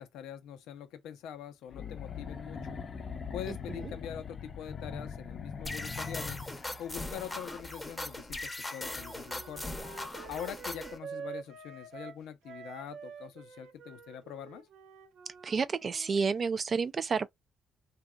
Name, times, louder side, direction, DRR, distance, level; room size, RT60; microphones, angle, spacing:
voice 1, 0.0-2.8 3.3-6.4 6.8-9.6 10.3-14.7, left 9 dB, 85° left, 0.6 m, -43 dB
sound 1, 1.7-6.9, left 6 dB, 45° left, 0.6 m, -41 dB
voice 2, 3.5-3.9 15.3-17.3, right 5 dB, 45° right, 0.4 m, -31 dB
sound 2, 5.6-11.0, left 1 dB, 15° left, 0.8 m, -40 dB
Wind instrument woodwind instrument, 8.8-16.2, right 6 dB, 85° right, 0.6 m, -47 dB
2.8 x 2.3 x 2.2 m
cardioid pair, 85°, 0 cm